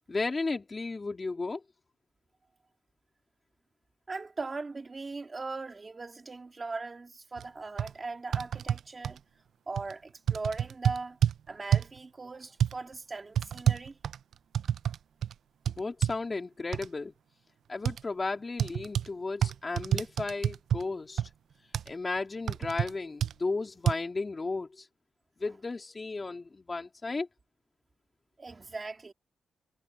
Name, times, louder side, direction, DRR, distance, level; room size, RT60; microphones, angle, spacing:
voice 1, 0.1-1.6 15.7-17.1 17.7-21.2 21.9-24.9 25.4-27.3, left 3 dB, 25° left, 3.5 m, -34 dB
voice 2, 4.1-9.2 9.7-11.2 11.5-14.0 28.4-29.1, right 3 dB, 30° right, 2.0 m, -39 dB
sound 1, 7.4-7.5 7.8-7.9 8.3-9.2 9.8-9.9 10.3-11.4 11.7-12.0 12.6-12.7 13.4-15.0 15.2-15.3 15.7-16.2 16.7-16.9 17.9-18.0 18.6-19.1 19.4-20.8 21.2-21.3 21.7-21.9 22.5-22.9 23.2-23.3 23.9-24.0, right 9 dB, 75° right, 0.5 m, -28 dB
cardioid pair, 110°, 0 cm